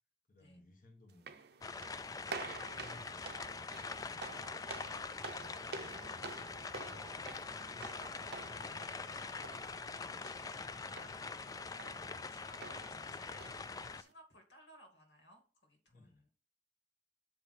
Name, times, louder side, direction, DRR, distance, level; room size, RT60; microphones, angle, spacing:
voice 1, 0.3-1.3 1.9-5.0 5.6-7.1 7.6-7.9 8.4-9.0 9.5-9.8 10.1-11.0 12.1-12.3 15.9-16.2, left 2 dB, 50° left, 1 dB, 1.2 m, -63 dB
sound 1, 1.1-14.1, right 4 dB, 65° right, 0.7 m, -50 dB
sound 2, 1.6-14.0, left 4 dB, 20° left, 0.3 m, -44 dB
sound 3, 3.2-8.4, right 3 dB, 20° right, 0.7 m, -61 dB
voice 2, 5.4-6.5 7.5-9.5 10.6-10.8 11.5-12.0 12.3-13.5 13.8-16.3, equal, 90° left, 2 dB, 2.2 m, -61 dB
7.3 x 4.9 x 4.2 m, 0.36 s
head